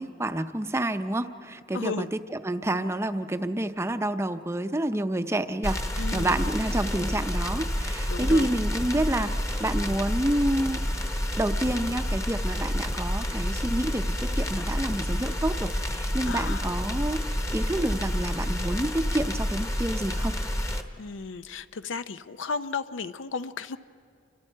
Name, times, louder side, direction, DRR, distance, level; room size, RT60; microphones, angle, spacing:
voice 1, 0.0-9.3 9.6-10.8 11.4-14.0 14.3-17.2 17.5-20.4, right 1 dB, 15° right, 9 dB, 0.6 m, -28 dB
voice 2, 1.7-2.1 6.0-6.5 8.1-8.5 16.2-16.6 21.0-23.8, left 4 dB, 90° left, 12 dB, 0.6 m, -34 dB
sound 1, 5.6-20.8, equal, 15° left, 1.0 m, -29 dB
29.0 x 25.0 x 4.6 m, 2.3 s
head